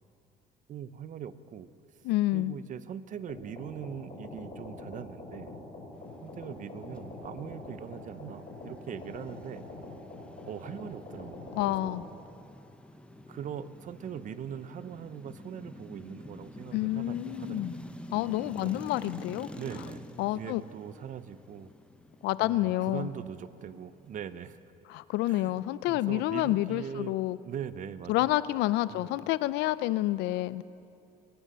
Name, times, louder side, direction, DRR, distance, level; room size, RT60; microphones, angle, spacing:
voice 1, 0.7-1.7 1.9-2.0 2.3-5.5 6.2-9.6 10.5-12.0 13.3-17.8 18.6-18.8 19.6-20.1 20.3-21.7 22.4-24.6 25.3-27.1 27.4-28.4 28.9-29.1, right 8 dB, 50° right, 14 dB, 0.7 m, -41 dB
voice 2, 2.0-2.6 11.6-12.0 16.7-17.7 18.1-19.5 20.2-20.6 22.2-23.1 24.9-27.4 28.1-30.6, left 16 dB, 90° left, 17 dB, 0.4 m, -29 dB
sound 1, 3.3-12.0, left 2 dB, 45° left, 4.8 m, -44 dB
sound 2, 8.0-24.8, left 1 dB, 5° left, 0.8 m, -47 dB
21.5 x 9.9 x 6.8 m, 2.7 s
cardioid pair, 110°, 17 cm